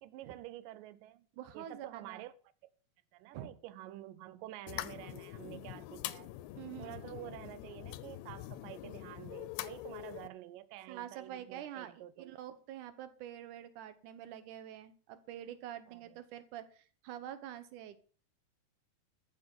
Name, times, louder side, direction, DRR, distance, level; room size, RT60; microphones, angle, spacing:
voice 1, 0.0-1.3 1.5-2.3 3.1-6.3 6.8-12.3 15.9-16.2, right 14 dB, 90° right, 1.9 m, -49 dB
voice 2, 1.4-2.2 3.3-3.5 6.6-7.0 10.9-18.0, right 11 dB, 65° right, 2.2 m, -46 dB
sound 1, 4.7-10.3, left 15 dB, 85° left, 2.7 m, -44 dB
14.0 x 5.7 x 7.7 m
omnidirectional pair, 4.6 m